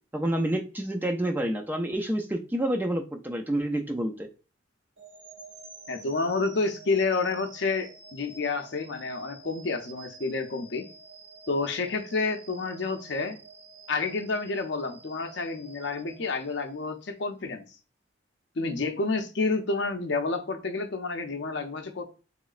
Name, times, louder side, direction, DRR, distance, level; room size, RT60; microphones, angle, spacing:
voice 1, 0.1-4.3, right 1 dB, 10° right, 3 dB, 0.3 m, -28 dB
sound 1, 5.0-17.1, right 4 dB, 65° right, 1.3 m, -50 dB
voice 2, 5.9-10.9 11.5-13.4 13.9-17.6 18.6-22.0, left 3 dB, 65° left, 6 dB, 0.5 m, -29 dB
3.9 x 3.1 x 2.3 m, 0.33 s
head